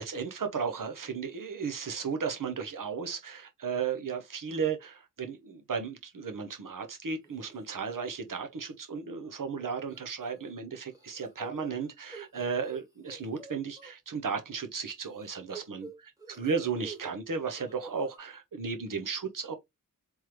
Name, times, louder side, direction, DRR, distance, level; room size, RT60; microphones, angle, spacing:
voice 1, 0.0-15.9 16.3-19.5, right 5 dB, 70° right, 0.9 m, -34 dB
sound 1, 7.2-7.7 8.1-8.4 8.6-8.7 9.9-10.5 10.9-13.9 15.0-17.1 17.4-18.2, right 3 dB, 10° right, 1.5 m, -49 dB
3.6 x 3.2 x 3.0 m
wide cardioid pair, 80°, 33 cm